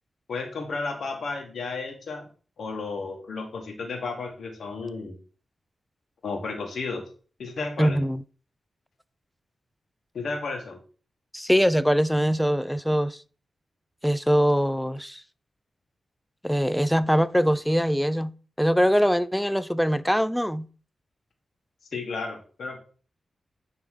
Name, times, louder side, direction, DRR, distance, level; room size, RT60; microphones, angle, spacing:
voice 1, 0.3-2.3 2.6-5.2 6.2-7.0 7.4-8.0 10.1-10.8 21.9-22.8, left 4 dB, 75° left, 1.6 m, -33 dB
voice 2, 7.8-8.2 11.3-13.2 14.0-15.2 16.4-18.3 18.6-20.7, equal, ahead, 0.4 m, -22 dB
9.2 x 3.4 x 3.8 m
cardioid pair, 60°, 0 cm